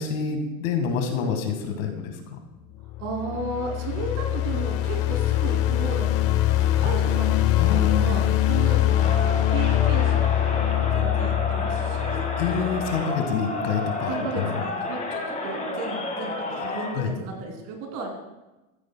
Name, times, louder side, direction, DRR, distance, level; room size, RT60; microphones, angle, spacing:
voice 1, 0.0-2.4 7.6-8.2 12.1-14.6 16.5-16.6 17.0-17.1, left 6 dB, 70° left, 5 dB, 1.8 m, -28 dB
sound 1, 2.8-13.0, left 12 dB, 35° left, 0.6 m, -23 dB
voice 2, 3.0-9.2 9.5-12.3 14.1-18.1, right 3 dB, 50° right, 1 dB, 2.8 m, -34 dB
Crowd, 8.9-17.0, left 2 dB, 15° left, 1.7 m, -31 dB
13.5 x 9.1 x 2.2 m, 1.1 s
supercardioid pair, 125°, 42 cm